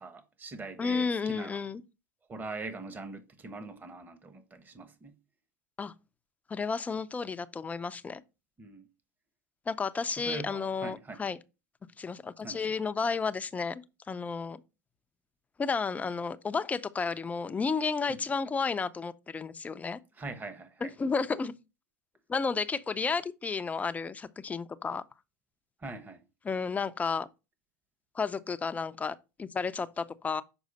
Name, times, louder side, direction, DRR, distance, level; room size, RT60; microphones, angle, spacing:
voice 1, 0.0-1.6 2.3-5.2 8.6-8.9 10.2-11.3 12.4-12.7 18.1-18.3 20.2-20.9 25.8-26.2, right 3 dB, 20° right, 1.1 m, -42 dB
voice 2, 0.8-1.8 5.8-5.9 6.5-8.2 9.7-11.4 12.0-14.6 15.6-20.0 20.8-21.5 22.3-25.0 26.5-27.3 28.1-30.4, left 5 dB, 15° left, 0.5 m, -32 dB
6.3 x 4.8 x 4.1 m
hypercardioid pair, 110°, 10 cm